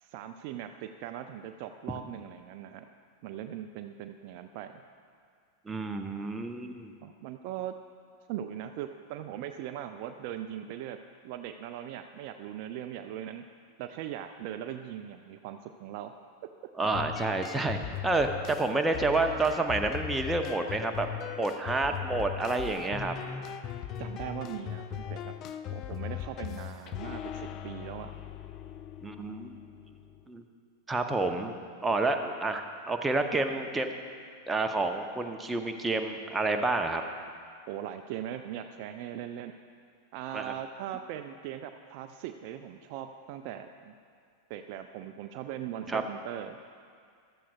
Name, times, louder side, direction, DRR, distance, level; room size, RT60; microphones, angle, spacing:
voice 1, 0.0-2.9 3.2-4.8 7.0-7.8 8.3-11.0 11.2-13.4 13.8-16.1 24.0-25.3 25.7-28.1 37.7-39.5 40.1-43.9 44.5-46.6, right 10 dB, 45° right, 7 dB, 0.4 m, -40 dB
voice 2, 5.7-6.9 16.8-17.8 18.0-21.1 21.4-23.1 29.0-29.5 30.3-30.4 30.9-31.5 31.8-33.9 34.5-37.0 40.3-40.5 45.9-46.0, right 3 dB, 10° right, 5 dB, 0.7 m, -29 dB
sound 1, 16.8-30.2, left 10 dB, 35° left, 0.4 m, -39 dB
14.5 x 12.5 x 2.4 m, 2.2 s
figure-of-eight pair, 90°, 0 cm